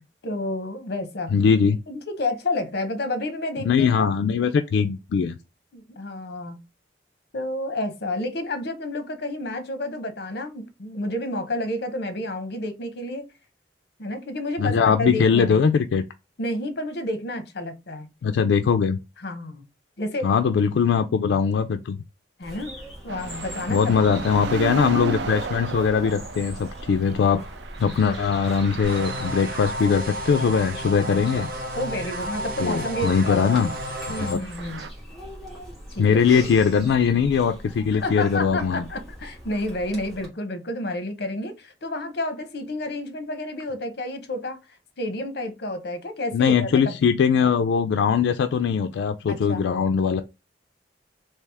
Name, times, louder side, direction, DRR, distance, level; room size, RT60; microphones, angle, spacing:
voice 1, 0.2-1.3 1.9-4.1 5.7-6.6 7.3-13.3 14.0-15.7 16.4-18.1 19.2-19.6 20.0-20.3 22.4-22.7 23.0-24.0 31.3-31.5 31.7-33.6 34.1-34.8 35.9-36.2 37.9-44.6 45.0-47.0 49.3-49.6, left 1 dB, 65° left, 0.8 m, -30 dB
voice 2, 1.3-1.8 3.6-5.4 14.6-16.0 18.2-19.0 20.2-22.0 23.7-27.4 27.8-31.5 32.6-33.7 34.2-34.4 36.0-38.8 46.3-50.2, left 6 dB, 80° left, 0.3 m, -21 dB
Bird vocalization bird call bird song, 22.4-40.3, equal, ahead, 1.7 m, -41 dB
sound 1, 23.1-30.1 30.4-30.5 31.2-31.7 32.0-32.2 34.1-34.9, right 4 dB, 75° right, 0.4 m, -34 dB
sound 2, 28.8-34.3, equal, 55° right, 1.0 m, -32 dB
3.4 x 2.8 x 3.3 m
head